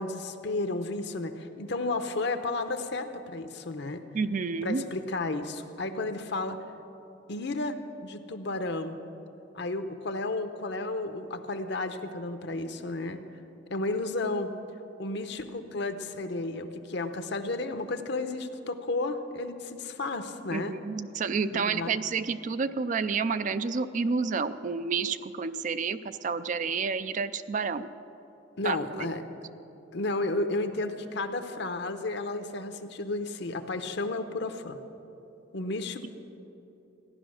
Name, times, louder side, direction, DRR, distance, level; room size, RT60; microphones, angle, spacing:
voice 1, 0.0-4.0 4.6-6.6 7.3-9.0 9.5-13.2 13.7-14.5 15.0-20.7 21.5-22.0 28.6-29.2 29.9-34.8 35.5-36.1, left 2 dB, 60° left, 8 dB, 0.8 m, -32 dB
voice 2, 4.1-4.8 20.5-27.9 28.6-29.1, right 5 dB, 40° right, 12 dB, 0.4 m, -30 dB
15.0 x 11.0 x 6.4 m, 3.0 s
head